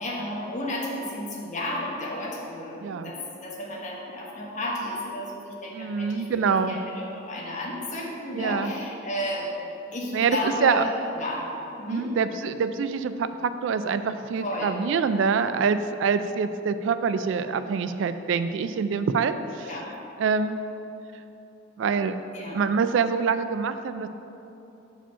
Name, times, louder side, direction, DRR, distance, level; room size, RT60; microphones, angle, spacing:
voice 1, 0.0-6.4 6.7-9.5 9.9-12.1 14.4-14.8 19.6-19.9 22.3-22.6, left 1 dB, 35° left, -3 dB, 1.2 m, -32 dB
voice 2, 2.8-3.1 5.7-6.8 8.3-8.7 10.1-10.8 11.9-19.7 20.2-20.6 21.8-22.2 22.5-24.1, right 5 dB, 65° right, 11 dB, 0.3 m, -25 dB
6.9 x 5.0 x 5.6 m, 3.0 s
head